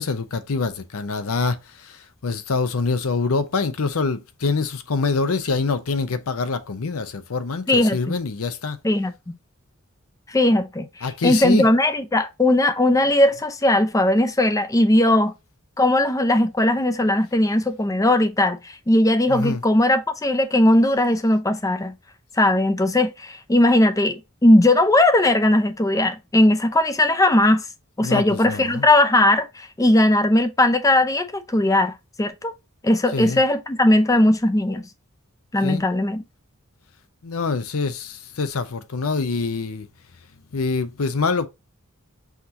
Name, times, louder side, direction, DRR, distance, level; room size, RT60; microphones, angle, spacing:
voice 1, 0.0-8.8 11.0-11.7 19.3-19.6 28.0-28.9 33.1-33.4 35.6-35.8 37.2-39.9 40.5-41.5, left 4 dB, 75° left, 0.7 m, -25 dB
voice 2, 7.7-8.2 8.8-9.3 10.3-15.3 15.8-21.9 22.4-27.7 28.0-32.5 32.8-34.8 35.5-36.2, left 1 dB, 15° left, 0.5 m, -18 dB
5.8 x 2.9 x 2.7 m
head